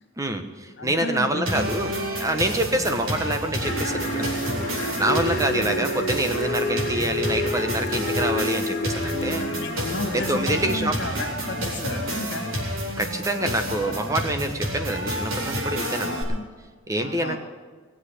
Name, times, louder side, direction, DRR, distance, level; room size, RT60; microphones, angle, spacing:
voice 1, 0.2-4.3 4.9-9.5 10.1-11.0 13.0-16.2 16.9-17.4, right 1 dB, 15° right, 7 dB, 1.2 m, -26 dB
voice 2, 0.8-1.8 4.8-5.4 9.5-12.7 13.4-14.1 15.8-16.4 17.0-17.4, left 1 dB, 55° left, 5 dB, 2.6 m, -33 dB
sound 1, 1.4-16.2, equal, 75° right, 4.2 m, -30 dB
sound 2, 3.6-10.4, left 1 dB, 35° left, 2.8 m, -29 dB
19.5 x 7.8 x 8.4 m, 1.5 s
head